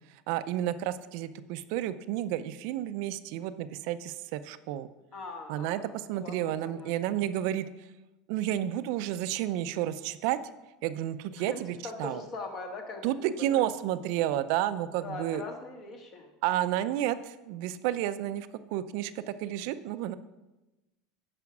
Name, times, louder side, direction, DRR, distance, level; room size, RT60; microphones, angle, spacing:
voice 1, 0.3-4.9 5.5-7.7 8.3-10.4 10.8-12.2 13.0-15.4 16.4-20.1, right 12 dB, 65° right, 12 dB, 0.4 m, -31 dB
voice 2, 5.1-6.9 11.3-11.6 11.8-13.1 13.4-13.6 15.0-16.3, left 3 dB, 40° left, 4 dB, 1.7 m, -41 dB
9.5 x 5.0 x 6.0 m, 1.0 s
supercardioid pair, 130°, 0 cm